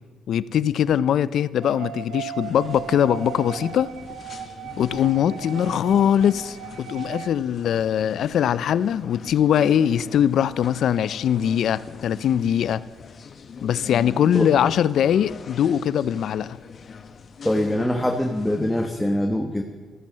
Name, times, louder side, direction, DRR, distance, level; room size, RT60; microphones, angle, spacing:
voice 1, 0.3-3.9 4.8-12.8 13.6-16.6, left 9 dB, 70° left, 17 dB, 0.5 m, -21 dB
sound 1, 1.6-7.3, right 11 dB, 85° right, 0.8 m, -37 dB
sound 2, 2.4-18.9, left 6 dB, 50° left, 0.9 m, -41 dB
voice 2, 17.4-19.6, left 1 dB, 5° left, 3 dB, 1.1 m, -23 dB
13.5 x 13.5 x 7.6 m, 1.5 s
cardioid pair, 90°, 0 cm